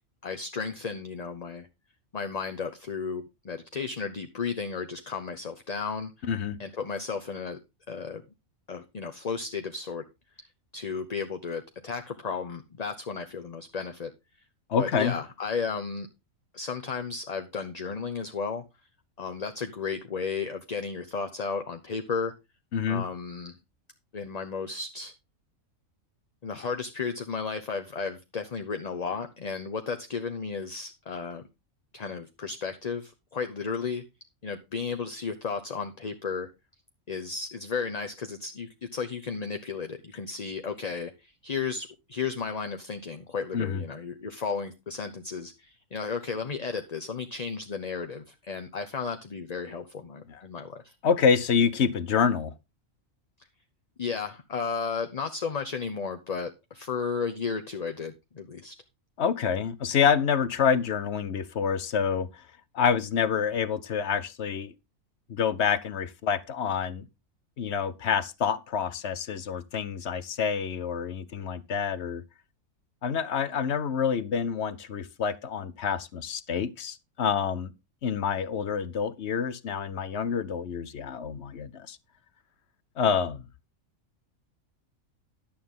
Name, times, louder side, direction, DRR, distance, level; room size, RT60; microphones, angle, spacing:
voice 1, 0.2-1.7 2.1-6.3 6.6-7.6 7.9-8.2 8.7-10.1 10.7-14.1 14.8-16.1 16.5-18.6 19.2-22.3 22.9-23.6 24.1-25.1 26.4-31.4 31.9-34.0 34.4-36.5 37.1-50.9 54.0-58.7, left 5 dB, 35° left, 0.8 m, -34 dB
voice 2, 6.3-6.6 14.7-15.1 22.7-23.0 43.5-43.8 50.3-50.4 51.0-52.5 59.2-62.4 62.7-64.7 65.3-67.0 67.6-72.2 73.0-77.7 78.0-82.0 83.0-83.4, left 7 dB, 60° left, 1.0 m, -27 dB
11.5 x 8.6 x 3.8 m
omnidirectional pair, 1.4 m